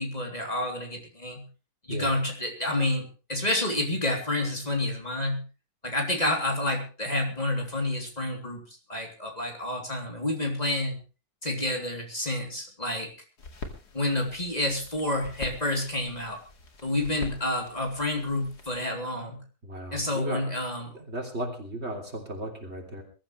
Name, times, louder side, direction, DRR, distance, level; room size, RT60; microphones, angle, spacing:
voice 1, 0.0-1.4 1.8-5.4 5.8-11.0 11.4-13.1 13.9-16.4 16.8-19.4 19.9-20.9, left 1 dB, 25° left, 1 dB, 3.5 m, -29 dB
sound 1, 13.4-18.8, left 3 dB, 85° left, 3.0 m, -44 dB
voice 2, 19.6-20.5 20.9-23.0, right 1 dB, 40° right, 2 dB, 3.5 m, -35 dB
22.0 x 14.0 x 3.3 m, 0.34 s
omnidirectional pair, 1.7 m